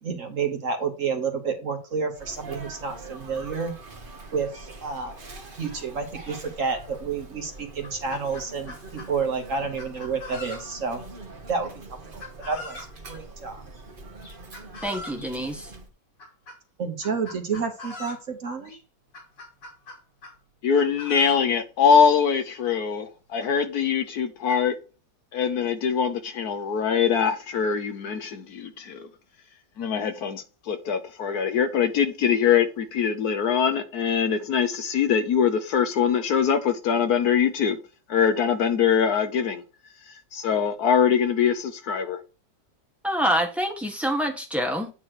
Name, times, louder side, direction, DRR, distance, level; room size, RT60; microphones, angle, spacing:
voice 1, 0.0-3.7 4.3-5.1 5.6-11.0 11.5-11.7 12.1-12.8 13.0-13.6 16.8-18.8, right 5 dB, 50° right, 1.4 m, -30 dB
Sneeze, 2.1-15.9, right 2 dB, 35° right, 1.1 m, -43 dB
Chicken rooster, 7.2-7.3 7.7-9.1 9.8-10.9 12.2-12.9 14.2-15.3 16.2-16.6 17.0-18.3 18.7-18.8 19.1-20.4 20.7-21.5 22.4-22.5 22.7-22.8 23.4-23.5 24.1-24.6, left 2 dB, 90° left, 3.1 m, -41 dB
voice 2, 14.8-15.7 43.0-44.9, equal, ahead, 1.1 m, -26 dB
voice 3, 20.6-24.8 25.3-29.1 29.8-37.8 38.1-39.6 40.1-42.2, left 7 dB, 65° left, 1.2 m, -23 dB
8.8 x 3.1 x 6.2 m
omnidirectional pair, 1.9 m